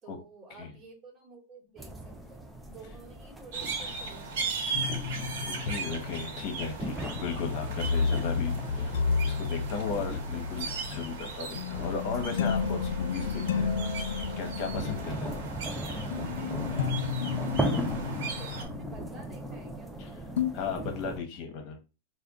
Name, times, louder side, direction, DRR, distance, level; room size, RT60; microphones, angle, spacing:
voice 1, 0.0-4.9 14.7-15.3 16.0-20.3, right 3 dB, 25° right, -1 dB, 1.3 m, -52 dB
sound 1, 1.8-21.2, right 1 dB, 5° right, 0.4 m, -39 dB
sound 2, 3.5-18.6, right 4 dB, 60° right, 1.0 m, -38 dB
sound 3, 4.7-20.0 20.4-20.5, left 5 dB, 80° left, 0.3 m, -32 dB
voice 2, 5.5-13.7 14.0-15.3 20.0-20.2 20.5-21.8, left 5 dB, 40° left, 4 dB, 1.1 m, -36 dB
3.4 x 2.2 x 3.6 m, 0.30 s
supercardioid pair, 150°, 0 cm